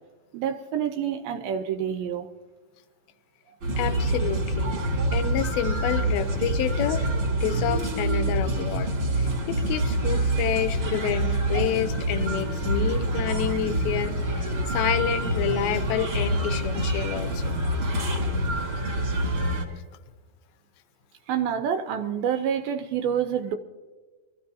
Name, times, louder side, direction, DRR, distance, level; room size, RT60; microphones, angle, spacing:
voice 1, 0.3-2.3 21.3-23.6, right 8 dB, 80° right, 2.4 m, -27 dB
sound 1, 3.6-19.6, right 1 dB, 40° right, 2.6 m, -26 dB
voice 2, 3.8-4.8 5.1-7.1 7.4-8.9 9.2-17.6, left 10 dB, 85° left, 2.7 m, -29 dB
23.5 x 14.5 x 2.7 m
omnidirectional pair, 4.3 m